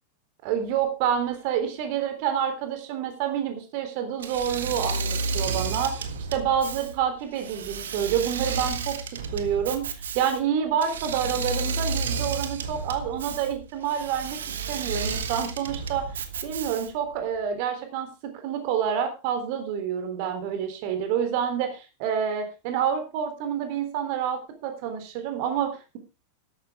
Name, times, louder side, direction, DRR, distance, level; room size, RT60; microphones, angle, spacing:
voice 1, 0.4-9.0 9.3-14.4 14.7-16.1 16.4-26.0, right 8 dB, 45° right, 7 dB, 3.5 m, -28 dB
Engine / Mechanisms, 4.2-17.1, right 4 dB, 65° right, 1.6 m, -32 dB
13.5 x 12.0 x 3.6 m, 0.30 s
figure-of-eight pair, 90°, 0 cm